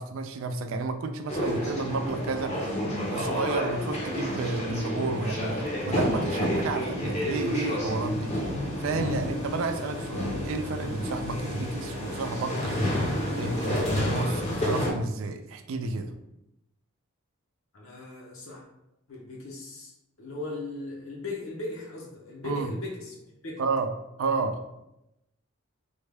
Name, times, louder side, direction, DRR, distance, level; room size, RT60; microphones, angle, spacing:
voice 1, 0.0-2.8 3.1-8.5 8.8-12.7 13.4-16.1 22.4-22.7 23.6-23.9 24.2-24.6, right 3 dB, 70° right, 8 dB, 0.4 m, -31 dB
sound 1, 1.3-14.9, left 1 dB, 30° left, 0.6 m, -30 dB
voice 2, 17.7-18.7 19.1-19.9 20.2-23.2 23.4-23.6, left 2 dB, 70° left, -3 dB, 0.7 m, -38 dB
3.5 x 2.2 x 3.3 m, 0.87 s
head